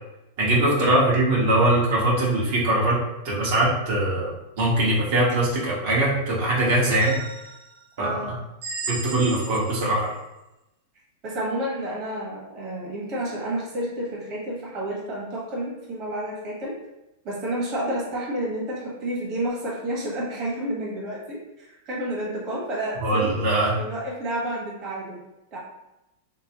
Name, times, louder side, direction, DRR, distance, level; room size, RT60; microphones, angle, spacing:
voice 1, 0.4-3.0 3.2-4.3 4.6-7.2 8.0-8.3 8.9-10.1 23.0-23.7, right 1 dB, 60° right, -5 dB, 1.0 m, -21 dB
sound 1, 7.0-7.8 8.6-10.1, right 4 dB, 75° right, 0.7 m, -35 dB
voice 2, 8.0-8.3 11.2-16.7 17.2-23.4 23.7-25.2 25.5-25.6, right 1 dB, 35° right, -5 dB, 1.2 m, -30 dB
3.3 x 2.9 x 2.9 m, 0.94 s
supercardioid pair, 150°, 0 cm